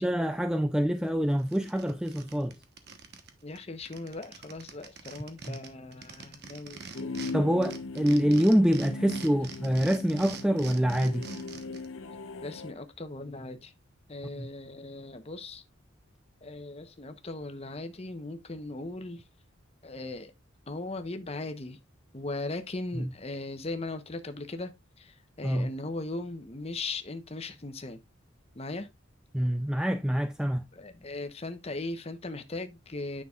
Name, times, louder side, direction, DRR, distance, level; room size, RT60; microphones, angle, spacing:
voice 1, 0.0-2.6 5.5-5.6 7.3-11.3 14.4-14.5 22.9-23.1 25.4-25.7 29.3-30.7, equal, 5° right, 0.4 m, -26 dB
sound 1, 1.0-1.1 1.4-3.3 3.6-3.7 3.9-7.3 7.6-11.9, right 5 dB, 55° right, 1.1 m, -44 dB
voice 2, 3.4-7.4 9.3-9.4 12.4-13.7 14.1-15.6 16.4-19.2 19.8-20.3 20.7-21.8 22.1-28.0 28.6-28.9 30.7-33.2, left 2 dB, 30° left, 0.9 m, -38 dB
sound 2, 6.9-12.7, left 3 dB, 85° left, 0.9 m, -39 dB
9.6 x 6.0 x 2.4 m
head